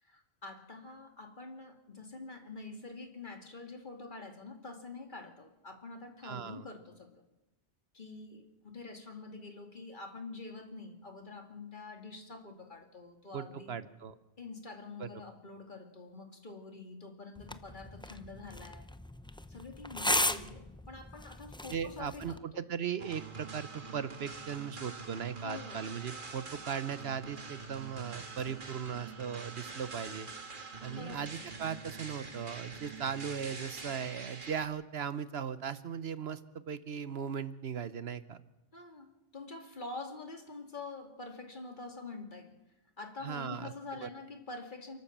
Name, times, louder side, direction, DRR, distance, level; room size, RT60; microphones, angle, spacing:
voice 1, 0.0-7.2 7.9-13.7 14.4-18.9 19.5-22.4 25.4-25.8 30.9-31.3 38.7-42.5 43.0-45.0, left 3 dB, 45° left, 4 dB, 2.7 m, -46 dB
voice 2, 6.2-6.6 13.3-14.1 15.0-15.1 21.7-30.3 30.8-38.4 43.2-43.7 44.0-44.1, right 7 dB, 65° right, 13 dB, 1.1 m, -38 dB
sound 1, 17.4-22.4, left 1 dB, 10° left, 0.3 m, -36 dB
sound 2, 23.0-34.7, right 4 dB, 50° right, 1.7 m, -45 dB
29.0 x 12.0 x 7.4 m, 0.99 s
omnidirectional pair, 1.1 m